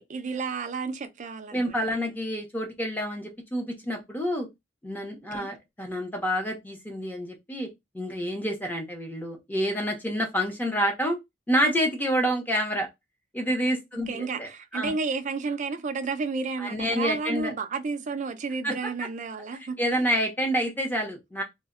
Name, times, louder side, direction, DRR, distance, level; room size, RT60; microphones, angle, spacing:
voice 1, 0.0-1.8 5.3-5.5 14.1-19.8, right 4 dB, 40° right, 0.4 m, -32 dB
voice 2, 1.5-4.5 4.8-7.7 7.9-11.2 11.5-12.9 13.3-14.9 16.6-17.5 18.6-18.7 19.8-21.4, equal, 10° left, 0.7 m, -28 dB
2.1 x 2.0 x 3.5 m
head